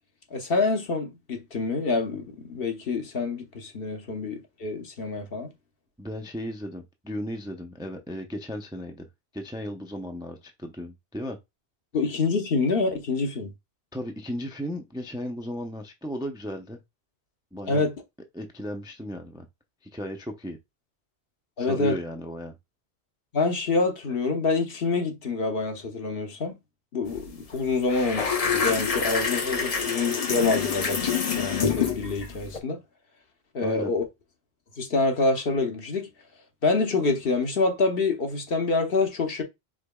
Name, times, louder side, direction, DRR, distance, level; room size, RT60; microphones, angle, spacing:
voice 1, 0.3-5.5 11.9-13.5 17.7-17.9 21.6-22.0 23.3-26.6 26.9-32.8 33.5-34.1 34.8-36.1 36.6-39.4, left 3 dB, 60° left, 1.2 m, -26 dB
voice 2, 6.0-9.1 9.3-11.4 13.9-16.8 17.5-17.8 18.3-19.5 19.9-20.6 21.6-22.6 33.6-33.9, equal, 5° right, 0.4 m, -35 dB
sound 1, 27.1-27.3 27.5-32.6, left 6 dB, 40° left, 0.7 m, -27 dB
5.0 x 3.8 x 2.2 m
omnidirectional pair, 1.1 m